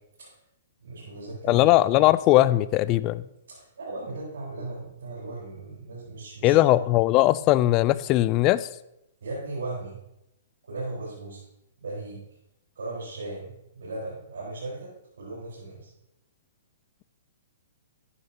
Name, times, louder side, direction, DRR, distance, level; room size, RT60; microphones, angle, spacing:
voice 1, 0.8-2.0 3.5-6.8 9.2-10.0 10.7-11.4 11.8-12.2 12.7-15.9, right 2 dB, 80° right, -7 dB, 4.7 m, -37 dB
voice 2, 1.5-3.2 6.4-8.7, left 16 dB, 35° left, 17 dB, 0.4 m, -20 dB
14.0 x 9.8 x 3.0 m, 0.84 s
hypercardioid pair, 130°, 0 cm